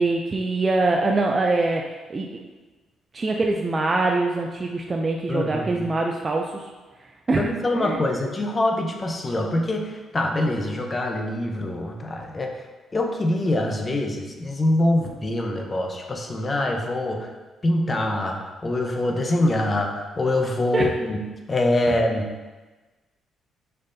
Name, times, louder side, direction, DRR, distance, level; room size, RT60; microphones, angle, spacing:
voice 1, 0.0-2.4 3.1-6.6 7.3-8.0 20.7-20.9, right 2 dB, 30° right, 1 dB, 0.4 m, -24 dB
voice 2, 5.3-5.9 7.3-12.5 12.9-17.2 17.6-21.2 21.5-22.3, left 1 dB, 30° left, 2 dB, 0.7 m, -24 dB
5.5 x 3.2 x 2.6 m, 1.2 s
cardioid pair, 90°, 0 cm